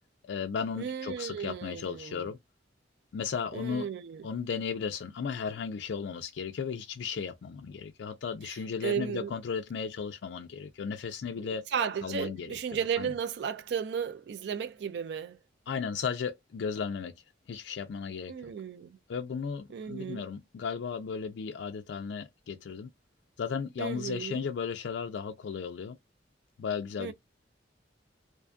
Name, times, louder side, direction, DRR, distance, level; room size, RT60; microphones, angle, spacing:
voice 1, 0.2-2.4 3.1-3.9 4.2-11.6 12.0-12.5 13.0-13.1 15.7-17.2 17.5-18.5 19.1-22.9 23.4-26.0 26.6-27.1, left 6 dB, 70° left, 0.4 m, -35 dB
voice 2, 0.8-2.2 3.5-4.3 8.5-8.6 8.8-9.3 11.4-15.4 18.3-19.0 19.7-20.2 23.8-24.4 27.0-27.1, right 7 dB, 60° right, 0.3 m, -34 dB
2.5 x 2.2 x 2.3 m
head